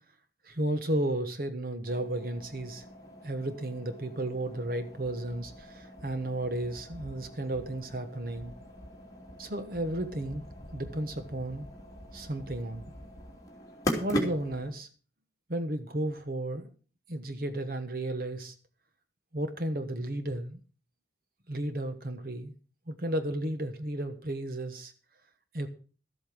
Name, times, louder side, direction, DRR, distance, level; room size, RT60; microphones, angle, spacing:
voice 1, 0.4-2.8 3.2-8.5 9.4-10.4 10.7-11.7 12.1-12.8 14.0-14.9 15.5-16.7 17.1-18.5 19.3-20.6 21.5-22.5 22.9-24.9 25.5-25.7, right 1 dB, 50° right, 9 dB, 1.3 m, -33 dB
sound 1, 1.9-14.7, equal, 20° left, 2.9 m, -41 dB
13.0 x 8.5 x 6.1 m, 0.39 s
head